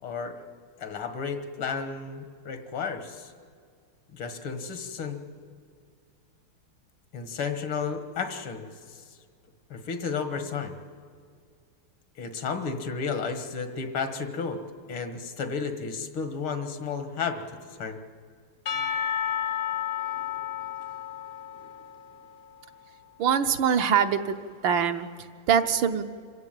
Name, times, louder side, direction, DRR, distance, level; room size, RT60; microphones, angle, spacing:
voice 1, 0.0-0.4 0.8-3.3 4.1-5.2 7.1-9.0 9.7-10.8 12.2-14.6 14.9-17.4 17.8-18.0, left 5 dB, 80° left, 8 dB, 2.4 m, -32 dB
Percussion / Church bell, 18.7-22.8, left 9 dB, 50° left, 0.7 m, -32 dB
voice 2, 23.2-24.4 24.6-26.0, right 7 dB, 70° right, 7 dB, 1.6 m, -24 dB
26.5 x 15.5 x 9.1 m, 2.1 s
omnidirectional pair, 2.3 m